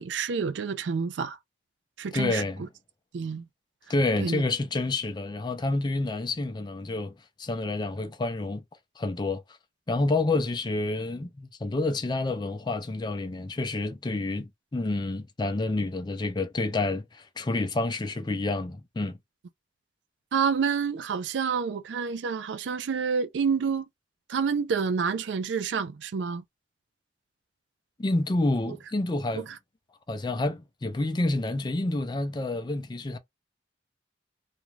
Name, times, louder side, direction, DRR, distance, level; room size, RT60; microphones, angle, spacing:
voice 1, 0.0-1.4 2.0-2.4 3.1-3.5 4.2-4.4 20.3-23.9 24.3-26.4 28.7-28.8 29.3-29.4, right 6 dB, 80° right, 0.4 m, -28 dB
voice 2, 2.1-2.7 3.9-7.1 7.4-8.6 9.0-9.4 9.9-19.2 28.0-29.5 30.1-33.2, left 2 dB, 25° left, 0.4 m, -28 dB
2.5 x 2.2 x 3.1 m
head